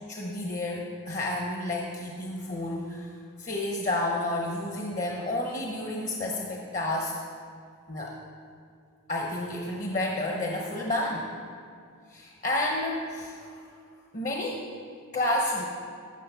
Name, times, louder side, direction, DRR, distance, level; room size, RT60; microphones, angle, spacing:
voice 1, 0.1-3.1 3.4-7.1 7.9-8.1 9.1-11.3 12.1-13.5 14.1-14.6 15.1-15.7, left 1 dB, 35° left, 0 dB, 0.9 m, -30 dB
14.0 x 6.5 x 5.6 m, 2.3 s
head